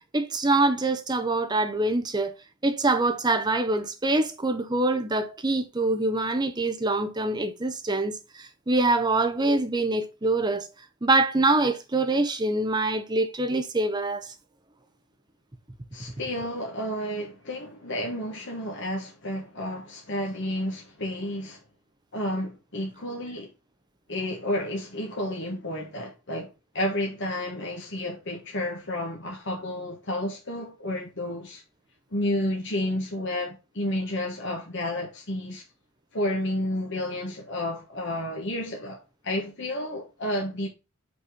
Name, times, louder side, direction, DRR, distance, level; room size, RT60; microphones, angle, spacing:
voice 1, 0.1-2.3 2.6-10.7 11.0-14.3, right 2 dB, 20° right, 0.7 m, -25 dB
voice 2, 15.9-21.6 22.1-23.5 24.1-26.5 26.7-31.6 32.1-35.6 36.1-40.7, left 1 dB, 55° left, 1.3 m, -31 dB
5.4 x 4.2 x 4.8 m
head